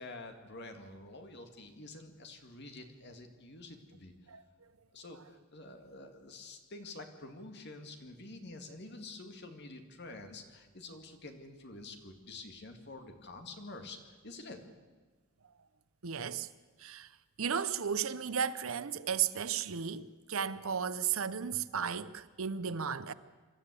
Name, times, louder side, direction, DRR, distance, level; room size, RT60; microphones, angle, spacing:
voice 1, 0.0-4.1 4.9-14.6, left 2 dB, 50° left, 2.2 m, -48 dB
voice 2, 16.0-16.5 16.8-17.1 17.4-23.1, right 7 dB, 70° right, 0.8 m, -34 dB
26.0 x 13.0 x 8.3 m
head